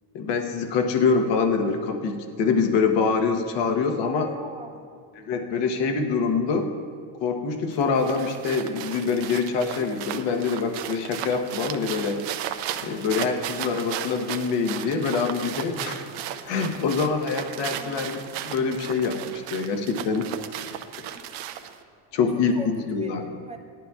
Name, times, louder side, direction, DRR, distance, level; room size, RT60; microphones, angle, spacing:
voice 1, 0.1-4.3 5.1-6.7 7.2-12.2 12.8-16.0 16.5-20.3 22.1-23.2, left 5 dB, 60° left, 4 dB, 1.1 m, -25 dB
voice 2, 4.2-4.9 17.7-18.1 21.1-21.3 22.3-23.6, right 2 dB, 15° right, 2 dB, 0.5 m, -41 dB
sound 1, 7.7-21.8, right 11 dB, 75° right, 0.8 m, -35 dB
18.0 x 12.0 x 2.4 m, 2.1 s
cardioid pair, 155°, 47 cm